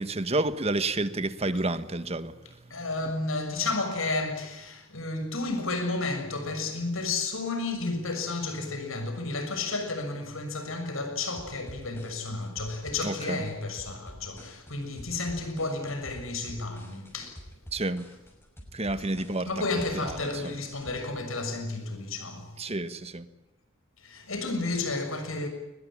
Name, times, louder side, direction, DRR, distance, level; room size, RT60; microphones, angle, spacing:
voice 1, 0.0-2.8 13.0-13.4 17.7-18.1 18.7-19.5 20.0-20.6 22.6-23.3, right 2 dB, 30° right, 1.4 m, -30 dB
voice 2, 2.7-17.4 19.0-19.1 19.5-22.6 24.0-25.5, left 3 dB, 80° left, 6.6 m, -32 dB
sound 1, 11.4-21.0, equal, 10° left, 6.0 m, -48 dB
23.0 x 20.5 x 10.0 m
head